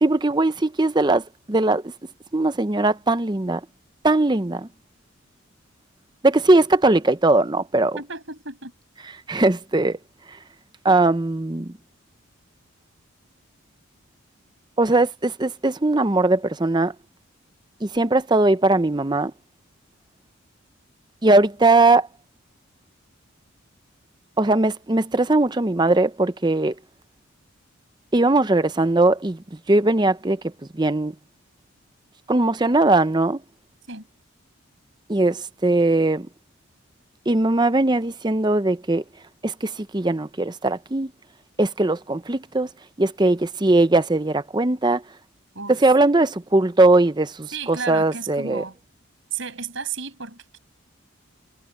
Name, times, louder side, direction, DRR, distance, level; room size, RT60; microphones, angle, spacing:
voice 1, 0.0-1.9 2.3-3.6 4.0-4.7 6.2-8.0 9.3-10.0 10.8-11.7 14.8-16.9 17.8-19.3 21.2-22.1 24.4-26.7 28.1-30.4 30.7-31.1 32.3-33.4 35.1-36.3 37.3-39.0 39.4-41.1 41.6-42.7 43.0-45.0 45.7-48.6, right 2 dB, 20° right, 0.6 m, -20 dB
voice 2, 8.0-8.7 33.9-34.1 45.5-45.8 47.5-48.7 49.3-50.6, right 5 dB, 65° right, 6.6 m, -33 dB
head